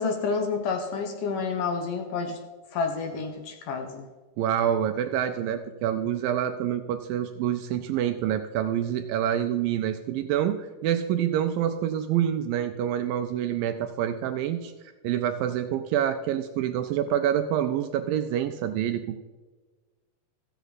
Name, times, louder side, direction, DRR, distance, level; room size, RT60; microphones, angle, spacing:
voice 1, 0.0-2.4 2.7-4.1, left 5 dB, 70° left, 6 dB, 2.2 m, -29 dB
voice 2, 4.4-14.7 15.0-19.2, right 10 dB, 80° right, 7 dB, 2.1 m, -27 dB
14.5 x 8.0 x 4.0 m, 1.3 s
omnidirectional pair, 4.5 m